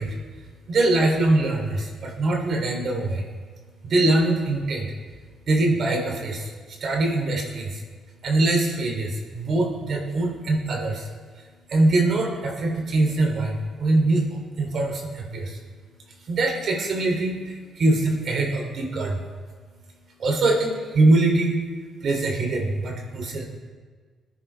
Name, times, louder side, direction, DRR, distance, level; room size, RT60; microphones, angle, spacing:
voice 1, 0.0-21.6 22.0-23.5, right 2 dB, 60° right, 1 dB, 2.8 m, -24 dB
19.5 x 10.0 x 3.4 m, 1.5 s
cardioid pair, 90°, 0 cm